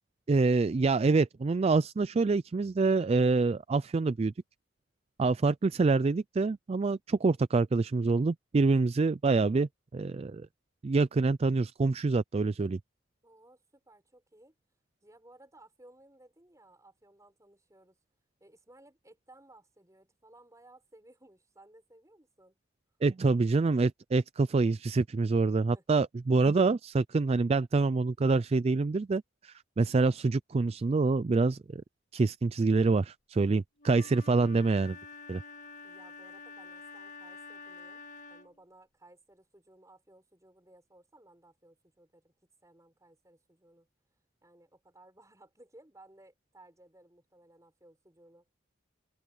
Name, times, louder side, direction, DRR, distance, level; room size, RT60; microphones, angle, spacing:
voice 1, 0.3-4.3 5.2-10.5 10.8-12.8 23.0-31.8 32.1-35.0 35.3-35.4, right 3 dB, 35° right, 0.3 m, -26 dB
voice 2, 13.2-14.5 15.0-18.0 18.4-22.6 25.7-26.1 35.8-38.0 38.3-42.3 42.6-43.9 44.4-48.5, right 1 dB, 15° right, 5.9 m, -59 dB
Wind instrument woodwind instrument, 33.8-38.6, left 4 dB, 40° left, 1.7 m, -48 dB
head